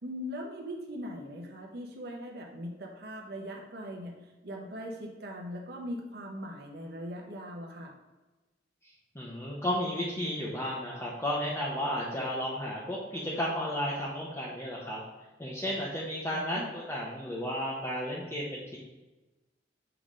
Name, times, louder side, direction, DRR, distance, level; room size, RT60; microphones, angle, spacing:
voice 1, 0.0-4.2 4.4-7.9 16.3-16.6, equal, 60° right, 0 dB, 0.8 m, -40 dB
voice 2, 9.1-15.0 15.4-18.8, equal, 15° left, -6 dB, 0.8 m, -33 dB
6.8 x 3.8 x 3.7 m, 1.1 s
head